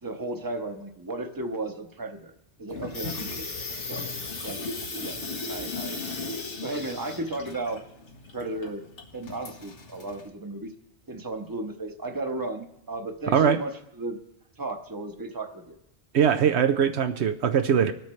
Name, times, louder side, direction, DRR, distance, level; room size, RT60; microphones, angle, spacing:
voice 1, 0.0-2.3 2.6-4.0 4.4-4.6 5.0-6.3 6.6-7.8 8.3-8.8 9.1-10.7 11.1-14.2 14.6-15.7, right 2 dB, 20° right, 5 dB, 1.0 m, -34 dB
Water tap faucet / Sink (filling or washing), 2.7-10.3, left 3 dB, 85° left, 1.6 m, -36 dB
voice 2, 16.1-17.9, right 8 dB, 75° right, 8 dB, 0.9 m, -21 dB
25.0 x 9.1 x 3.2 m, 0.82 s
omnidirectional pair, 1.2 m